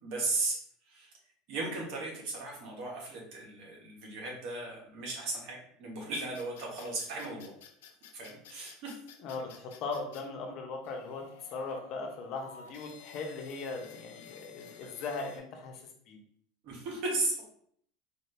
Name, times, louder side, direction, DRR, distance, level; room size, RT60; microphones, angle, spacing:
voice 1, 0.0-0.6 0.9-1.1 1.5-7.5 8.1-9.0 16.6-17.4, right 2 dB, 60° right, -1 dB, 1.5 m, -36 dB
sound 1, 6.1-10.2 10.8-15.4, left 8 dB, 85° left, 0.6 m, -53 dB
voice 2, 9.2-11.2 11.5-16.2, left 3 dB, 55° left, 2 dB, 1.0 m, -39 dB
4.3 x 2.7 x 3.3 m, 0.64 s
supercardioid pair, 120°, 0 cm